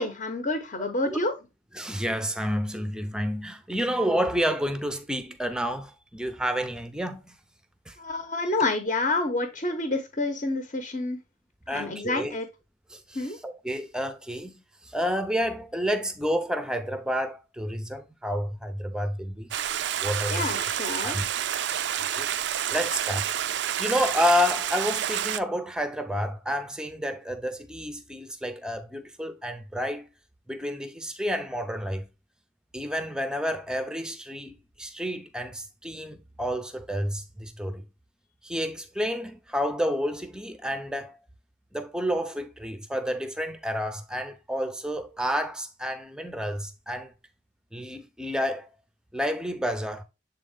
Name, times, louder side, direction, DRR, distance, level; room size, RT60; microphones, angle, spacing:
voice 1, 0.0-1.3 8.0-11.2 11.7-12.5 13.1-13.4 20.3-21.2, left 2 dB, 40° left, 1.0 m, -28 dB
voice 2, 1.7-7.3 7.9-8.0 8.4-8.5 11.7-12.4 12.9-19.5 20.0-20.7 21.0-21.3 22.1-22.3 22.7-23.3 23.8-30.1 30.5-32.1 32.7-37.8 38.4-41.2 41.7-47.1 47.7-48.7 49.1-50.0, equal, 5° right, 0.6 m, -30 dB
Stream, 19.5-25.4, right 10 dB, 60° right, 0.4 m, -29 dB
7.3 x 3.8 x 3.6 m
head